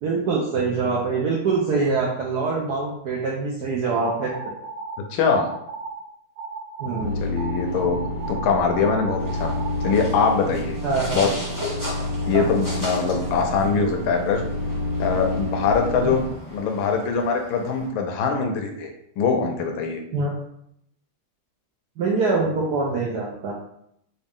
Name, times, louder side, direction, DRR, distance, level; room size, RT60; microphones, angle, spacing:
voice 1, 0.0-4.3 6.8-7.2 10.8-11.2 12.3-12.4 15.9-16.1 20.1-20.3 22.0-23.5, right 4 dB, 75° right, -2 dB, 0.9 m, -24 dB
sound 1, 4.0-5.0 5.3-6.0 6.4-7.0 7.4-10.1, right 5 dB, 40° right, 1.6 m, -35 dB
voice 2, 5.1-5.5 7.2-8.0 8.3-9.5 9.8-10.8 11.1-11.3 12.3-14.4 15.0-18.9 19.2-20.0, left 5 dB, 75° left, 4 dB, 1.3 m, -22 dB
sound 2, 7.0-16.3, left 2 dB, 45° left, 0.6 m, -29 dB
sound 3, 9.2-17.9, left 1 dB, 15° right, 0.7 m, -37 dB
4.0 x 2.4 x 3.5 m, 0.74 s
omnidirectional pair, 2.3 m